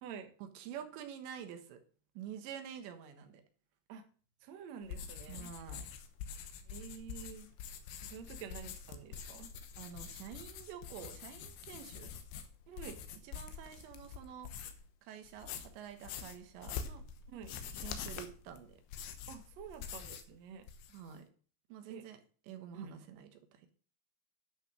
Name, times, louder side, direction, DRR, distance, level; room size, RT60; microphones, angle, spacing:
voice 1, 0.4-1.8 2.1-3.4 5.3-5.9 9.8-12.1 13.2-14.5 15.0-17.0 17.8-18.8 20.9-21.3 21.7-22.2 22.5-23.6, right 9 dB, 90° right, 7 dB, 3.5 m, -48 dB
voice 2, 4.4-5.5 6.6-7.5 8.0-9.5 12.7-13.0 17.3-17.5 19.3-20.6 21.9-22.0 22.7-23.0, right 7 dB, 70° right, 7 dB, 1.6 m, -48 dB
sound 1, 4.8-14.9 15.3-20.3 20.6-21.1, left 7 dB, 85° left, 3.3 m, -46 dB
11.0 x 6.0 x 6.1 m, 0.42 s
omnidirectional pair, 5.0 m